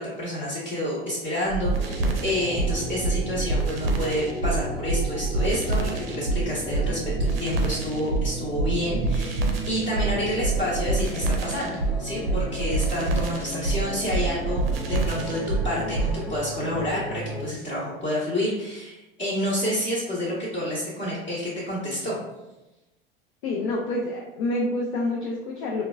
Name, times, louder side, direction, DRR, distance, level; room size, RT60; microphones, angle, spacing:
voice 1, 0.0-22.2, left 1 dB, 25° left, -8 dB, 0.9 m, -29 dB
sound 1, 1.5-16.2, right 3 dB, 75° right, 0.5 m, -26 dB
sound 2, 1.7-17.4, equal, ahead, 0.4 m, -35 dB
voice 2, 23.4-25.9, left 2 dB, 55° left, -2 dB, 0.6 m, -27 dB
3.7 x 2.2 x 2.3 m, 1.0 s
figure-of-eight pair, 80°, 29 cm